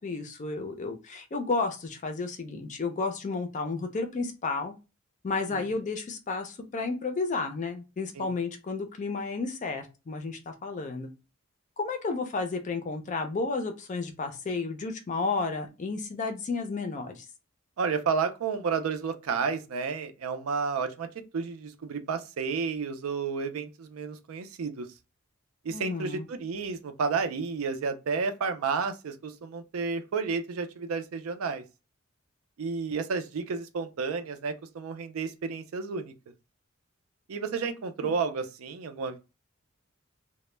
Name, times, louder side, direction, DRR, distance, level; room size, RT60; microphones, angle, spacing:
voice 1, 0.0-4.7 5.2-11.1 11.8-17.3 25.7-26.3 38.0-38.1, left 3 dB, 35° left, 0.4 m, -32 dB
voice 2, 17.8-21.1 21.3-24.9 25.6-31.6 32.6-36.1 37.3-39.2, right 5 dB, 85° right, 0.4 m, -31 dB
2.1 x 2.0 x 3.0 m
head